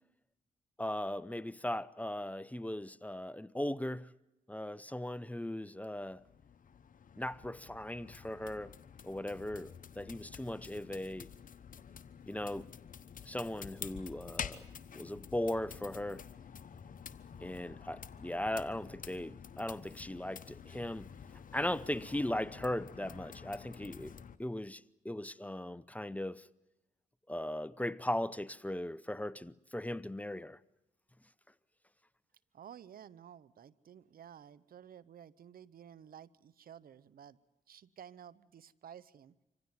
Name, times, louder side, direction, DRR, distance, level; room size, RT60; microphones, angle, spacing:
voice 1, 0.8-4.1 4.5-6.2 7.2-8.7 9.0-11.3 12.3-12.7 13.3-14.6 14.9-16.2 17.4-21.1 21.5-26.5 27.3-30.6, left 1 dB, 10° left, 0.7 m, -38 dB
sound 1, 5.9-24.4, left 7 dB, 55° left, 1.1 m, -49 dB
voice 2, 32.5-37.4 37.7-39.3, right 9 dB, 65° right, 0.8 m, -53 dB
25.5 x 16.0 x 9.6 m
supercardioid pair, 50°, 16 cm